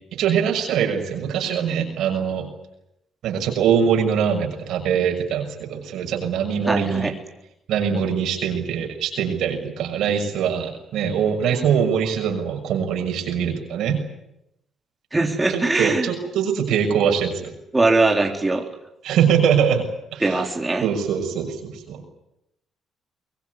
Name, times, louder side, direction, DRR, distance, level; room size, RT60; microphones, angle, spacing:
voice 1, 0.1-2.5 3.2-7.1 7.7-14.0 15.5-17.5 19.0-20.4 20.8-22.0, right 7 dB, 85° right, 3 dB, 6.5 m, -22 dB
voice 2, 6.7-7.1 15.1-16.1 17.7-18.7 20.2-20.9, right 2 dB, 15° right, 1 dB, 4.0 m, -21 dB
24.0 x 21.5 x 9.6 m, 0.84 s
cardioid pair, 90°, 0 cm